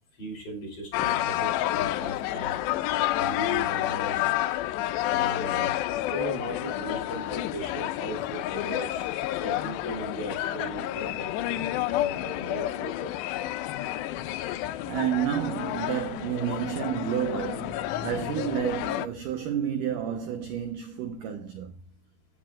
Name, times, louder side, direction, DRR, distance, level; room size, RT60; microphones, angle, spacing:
voice 1, 0.2-2.6 3.2-4.3 5.1-5.7 6.0-13.1, equal, 35° left, 5.7 m, -38 dB
sound 1, 0.9-19.1, left 14 dB, 85° left, 2.9 m, -30 dB
voice 2, 14.4-21.7, right 9 dB, 70° right, 2.0 m, -30 dB
15.0 x 9.8 x 2.4 m
omnidirectional pair, 5.0 m